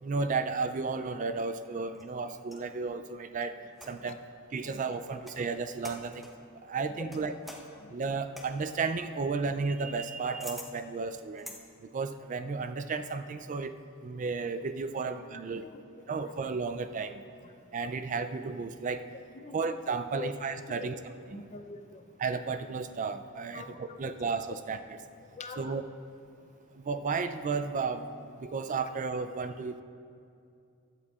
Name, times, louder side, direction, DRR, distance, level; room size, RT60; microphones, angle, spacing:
voice 1, 0.0-3.5 3.9-4.2 4.5-6.3 6.6-7.3 7.9-11.5 11.9-13.7 14.0-15.6 16.1-17.2 17.7-19.0 19.5-21.0 21.3-21.5 22.2-25.0 25.6-25.8 26.7-29.8, right 4 dB, 35° right, 10 dB, 0.3 m, -33 dB
sound 1, 1.4-2.7 3.7-4.2 5.0-5.5 5.8-6.4 7.1-11.6, left 1 dB, ahead, 0.9 m, -48 dB
voice 2, 6.8-7.5 7.8-7.9 14.9-15.1 15.5-15.7 16.0-16.3 17.4-17.5 19.3-20.3 20.7-21.0 21.3-22.1 23.5-24.1 25.2-25.8, left 4 dB, 35° left, 7 dB, 0.5 m, -45 dB
15.5 x 11.0 x 2.4 m, 2.4 s
head